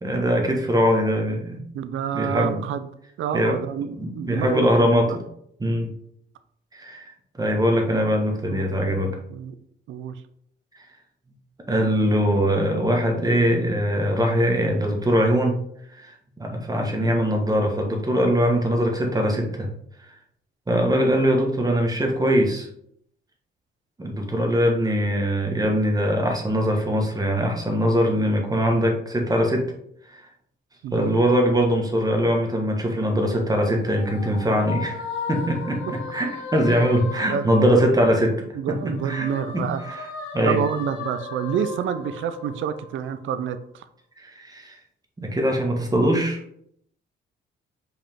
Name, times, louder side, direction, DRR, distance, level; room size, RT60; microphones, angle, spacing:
voice 1, 0.0-1.6 2.1-2.6 3.3-3.6 3.9-5.2 5.6-5.9 6.7-7.1 7.4-9.2 11.7-15.6 15.9-19.7 20.0-20.1 20.7-22.7 24.0-29.7 30.1-30.3 30.9-40.1 40.3-40.6 44.2-44.8 45.2-46.4, equal, 20° right, 2 dB, 1.5 m, -22 dB
voice 2, 1.7-2.9 3.2-5.2 8.5-8.7 9.3-9.5 9.9-10.1 30.8-31.1 37.2-37.8 38.5-39.8 40.4-43.8, right 8 dB, 75° right, 11 dB, 0.6 m, -28 dB
sound 1, 33.4-38.4 38.7-43.5, left 4 dB, 80° left, 1.0 m, -36 dB
5.4 x 4.9 x 3.7 m, 0.71 s
cardioid pair, 90°, 20 cm